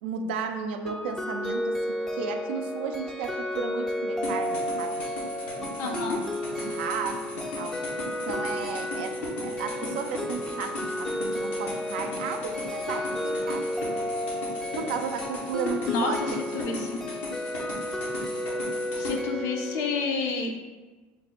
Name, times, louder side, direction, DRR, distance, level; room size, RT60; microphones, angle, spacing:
voice 1, 0.0-5.0 5.6-6.3 6.6-7.2 7.5-7.8 8.2-13.7 14.8-16.2 16.5-16.6, right 6 dB, 85° right, 6 dB, 0.4 m, -34 dB
sound 1, 0.9-20.0, left 1 dB, 10° left, 0.4 m, -32 dB
sound 2, 4.2-19.1, left 2 dB, 85° left, 0.9 m, -38 dB
voice 2, 5.8-6.2 15.9-17.0 19.0-20.6, left 4 dB, 65° left, 2 dB, 0.6 m, -30 dB
3.2 x 2.1 x 4.2 m, 1.3 s
supercardioid pair, 90°, 6 cm